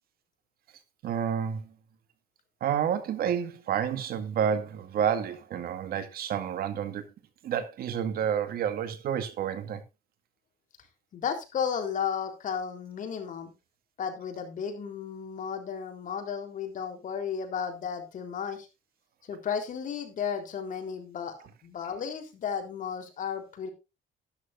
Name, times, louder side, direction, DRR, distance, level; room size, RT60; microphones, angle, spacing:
voice 1, 1.0-1.7 2.6-7.0 7.4-9.8, right 8 dB, 65° right, 2.0 m, -29 dB
voice 2, 11.1-13.5 14.0-18.7 19.3-23.7, left 7 dB, 50° left, 3.6 m, -34 dB
12.5 x 11.5 x 2.6 m
cardioid pair, 110°, 17 cm